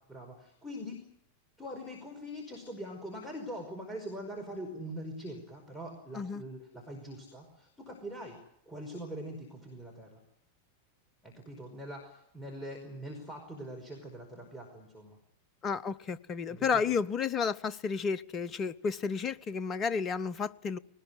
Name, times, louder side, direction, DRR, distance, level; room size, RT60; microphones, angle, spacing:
voice 1, 0.1-1.0 1.6-8.4 8.7-10.2 11.2-15.2 16.5-16.9, equal, 5° left, 5.2 m, -43 dB
voice 2, 15.6-20.8, left 5 dB, 30° left, 0.9 m, -32 dB
21.5 x 19.5 x 9.6 m
figure-of-eight pair, 90°, 0 cm